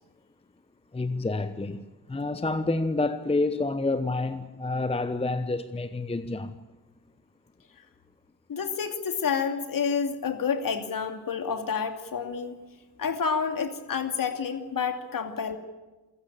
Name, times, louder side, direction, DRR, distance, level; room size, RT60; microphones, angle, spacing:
voice 1, 0.9-6.5, left 2 dB, 10° left, 1.0 m, -28 dB
voice 2, 8.5-12.6 13.0-15.6, left 6 dB, 40° left, 2.7 m, -29 dB
27.5 x 16.5 x 8.8 m
figure-of-eight pair, 45°, 50 cm